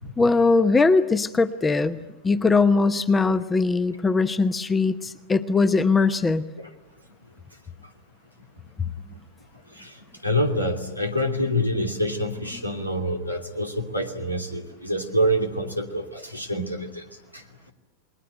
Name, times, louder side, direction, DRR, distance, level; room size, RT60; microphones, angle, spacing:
voice 1, 0.2-2.0 2.2-6.4 8.8-8.9, left 3 dB, 15° left, 14 dB, 0.9 m, -20 dB
voice 2, 10.2-17.0 17.3-17.4, equal, 90° left, 3 dB, 2.8 m, -26 dB
29.0 x 21.0 x 9.0 m, 1.0 s
figure-of-eight pair, 90°, 0 cm